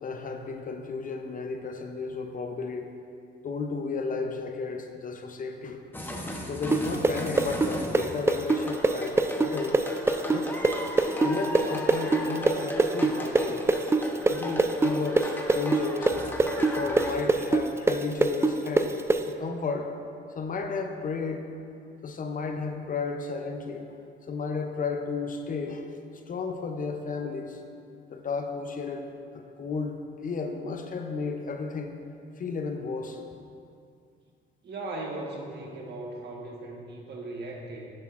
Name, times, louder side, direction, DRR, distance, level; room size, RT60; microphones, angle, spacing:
voice 1, 0.0-2.9 3.4-5.8 6.5-9.8 10.3-10.5 11.2-13.6 14.3-16.2 16.6-19.0 19.3-19.9 20.3-21.5 22.0-23.9 24.3-25.9 26.3-27.6 28.1-32.0 32.4-33.2, left 4 dB, 45° left, 5 dB, 0.7 m, -33 dB
sound 1, 5.9-17.1, left 1 dB, 10° left, 0.9 m, -35 dB
sound 2, 6.7-14.3 14.6-19.2, right 3 dB, 15° right, 0.3 m, -22 dB
voice 2, 34.6-37.9, right 2 dB, 55° right, -1 dB, 1.4 m, -38 dB
10.0 x 7.5 x 2.5 m, 2.5 s
cardioid pair, 90°, 20 cm